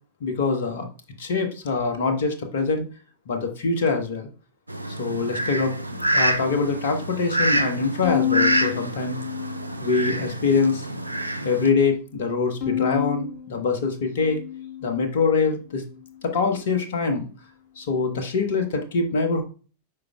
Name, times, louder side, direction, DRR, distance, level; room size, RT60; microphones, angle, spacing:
voice 1, 0.2-0.9 1.2-2.9 3.3-4.3 5.0-9.2 9.8-10.9 11.4-14.4 14.8-15.8 16.2-17.3 17.8-19.4, left 4 dB, 60° left, 6 dB, 1.2 m, -24 dB
Fowl, 4.7-11.7, right 1 dB, 85° right, 0.5 m, -27 dB
Bowed string instrument, 8.0-10.4 10.8-11.6 12.6-15.1, left 10 dB, 35° left, 1.8 m, -30 dB
8.3 x 5.2 x 2.4 m, 0.37 s
figure-of-eight pair, 90°, 0 cm